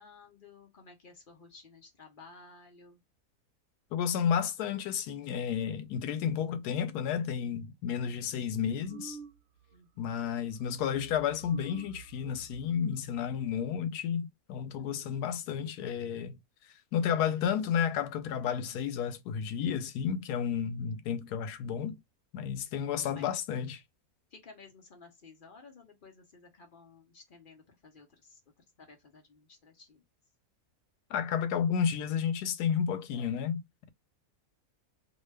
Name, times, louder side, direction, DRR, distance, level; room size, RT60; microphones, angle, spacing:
voice 1, 0.0-3.0 9.7-10.4 23.1-23.3 24.3-30.0, left 4 dB, 50° left, 0.7 m, -55 dB
voice 2, 3.9-9.2 10.0-16.4 16.9-22.0 22.3-23.8 31.1-33.9, left 8 dB, 85° left, 1.1 m, -32 dB
sound 1, 8.8-9.8 10.0-10.3 10.6-13.8, right 7 dB, 70° right, 1.0 m, -50 dB
2.7 x 2.2 x 3.2 m
omnidirectional pair, 1.6 m